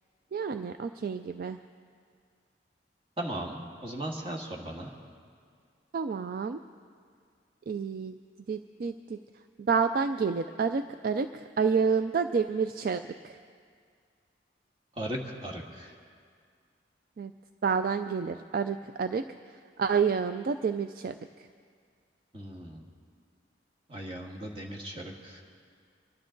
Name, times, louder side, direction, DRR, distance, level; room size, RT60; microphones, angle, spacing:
voice 1, 0.3-1.6 5.9-6.6 7.7-8.2 8.5-9.2 9.7-13.3 17.2-17.3 17.6-19.2 19.8-21.1, right 5 dB, 50° right, 9 dB, 0.3 m, -29 dB
voice 2, 3.2-4.9 15.0-15.9 22.3-22.8 23.9-25.4, right 1 dB, 30° right, 0 dB, 1.7 m, -37 dB
24.5 x 12.0 x 3.9 m, 2.1 s
head